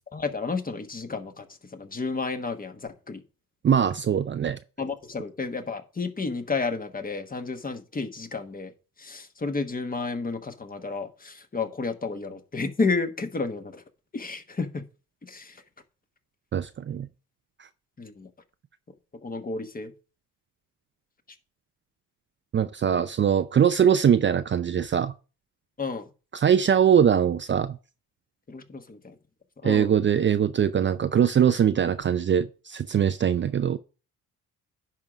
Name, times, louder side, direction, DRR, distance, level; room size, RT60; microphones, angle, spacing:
voice 1, 0.1-1.5 1.7-3.2 4.8-8.7 9.0-13.8 14.1-14.8 15.2-15.6 18.0-18.3 19.2-19.9 22.9-23.0 25.8-26.1 28.5-29.1 29.6-29.9, left 4 dB, 25° left, 1.2 m, -31 dB
voice 2, 3.6-4.6 16.5-17.1 22.5-25.1 26.3-27.8 29.6-33.8, right 8 dB, 35° right, 0.5 m, -22 dB
10.5 x 3.8 x 6.0 m
cardioid pair, 85°, 35 cm